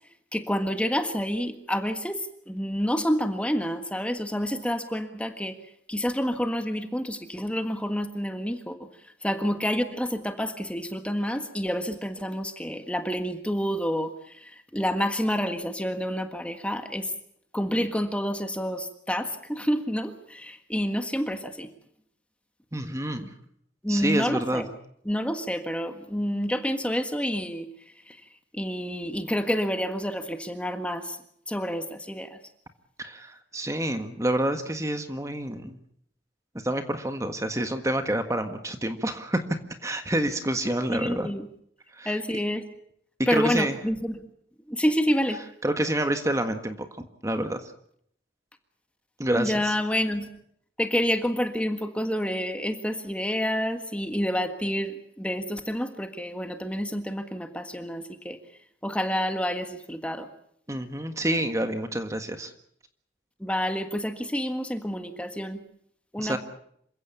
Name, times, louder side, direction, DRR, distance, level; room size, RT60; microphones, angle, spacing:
voice 1, 0.3-5.5 5.9-8.8 9.2-14.1 14.7-17.1 17.5-21.7 23.2-23.3 23.8-24.7 25.0-27.6 28.5-31.2 31.5-32.4 40.9-41.5 42.0-42.6 43.3-44.2 44.7-45.4 49.3-50.2 50.8-58.4 58.8-60.3 63.4-65.6 66.1-66.4, equal, 5° left, 7 dB, 1.6 m, -28 dB
voice 2, 22.7-23.3 23.9-24.7 33.0-35.8 36.6-39.4 39.8-41.3 42.0-42.2 43.3-43.8 45.6-47.6 49.2-49.7 60.7-62.5 66.2-66.4, right 1 dB, 15° right, 7 dB, 1.6 m, -28 dB
27.5 x 16.0 x 8.6 m, 0.68 s
head